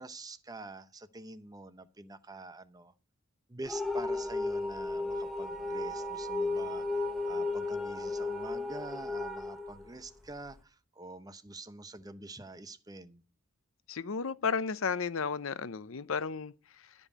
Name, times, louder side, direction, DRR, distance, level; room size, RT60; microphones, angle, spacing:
voice 1, 0.0-2.9 3.5-13.2, right 2 dB, 20° right, 0.7 m, -46 dB
sound 1, 3.6-10.6, left 2 dB, ahead, 1.0 m, -34 dB
voice 2, 13.9-16.9, left 5 dB, 75° left, 0.6 m, -33 dB
12.0 x 5.4 x 8.3 m
head